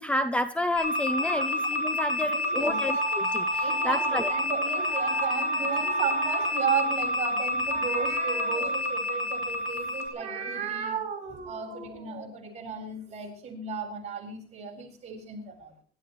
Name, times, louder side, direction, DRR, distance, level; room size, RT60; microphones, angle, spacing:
voice 1, 0.0-4.3, left 1 dB, 5° left, 10 dB, 0.6 m, -30 dB
sound 1, 0.8-10.1, left 2 dB, 80° left, 6.2 m, -28 dB
voice 2, 1.2-1.5 2.3-2.8 3.6-15.7, right 6 dB, 35° right, -1 dB, 7.8 m, -34 dB
sound 2, 2.6-4.4 4.9-5.3 5.6-6.5, right 5 dB, 80° right, 2.1 m, -35 dB
26.0 x 13.5 x 3.2 m, 0.43 s
cardioid pair, 155°, 20 cm